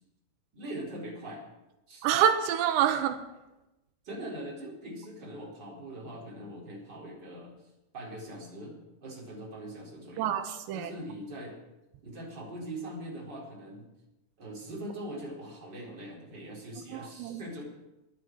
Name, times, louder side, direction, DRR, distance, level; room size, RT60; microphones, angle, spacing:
voice 1, 0.5-1.5 1.9-2.1 4.0-7.5 7.9-10.3 10.7-11.6 12.0-13.9 14.4-17.6, right 1 dB, 25° right, 4.5 m, -42 dB
voice 2, 2.0-3.3 10.2-10.9 16.9-17.4, right 9 dB, 85° right, 3.0 m, -27 dB
23.0 x 11.0 x 4.7 m
omnidirectional pair, 5.1 m